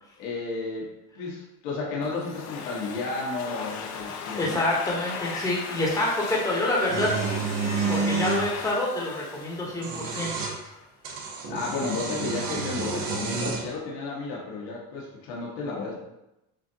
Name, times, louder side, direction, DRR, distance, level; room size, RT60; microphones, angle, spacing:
voice 1, 0.2-0.9 1.1-4.6 11.5-15.9, left 3 dB, 75° left, -3 dB, 1.4 m, -32 dB
Domestic sounds home sounds, 2.0-10.5, left 6 dB, 50° left, 0.6 m, -38 dB
voice 2, 4.4-7.1 7.9-10.7, left 2 dB, 10° left, -4 dB, 1.0 m, -27 dB
sound 1, 6.9-8.5 9.6-10.6 11.0-13.7, right 5 dB, 70° right, 1.0 m, -29 dB
6.6 x 2.6 x 2.8 m, 0.90 s
cardioid pair, 135°, 36 cm